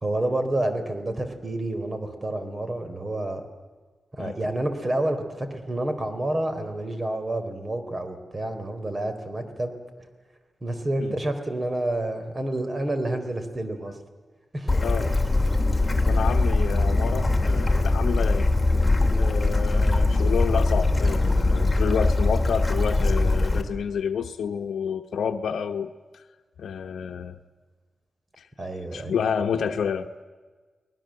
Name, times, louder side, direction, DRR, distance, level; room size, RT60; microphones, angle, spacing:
voice 1, 0.0-3.4 4.1-9.7 10.6-14.0 14.5-14.7 19.0-19.4 28.6-29.2, right 1 dB, 35° right, 8 dB, 4.0 m, -29 dB
Bird / Stream, 14.7-23.6, left 2 dB, 15° left, 3.1 m, -21 dB
voice 2, 15.7-18.5 19.2-25.9 26.6-27.4 28.4-28.5 28.9-30.1, left 7 dB, 90° left, 6 dB, 0.9 m, -29 dB
30.0 x 20.0 x 7.7 m, 1.4 s
cardioid pair, 70°, 0 cm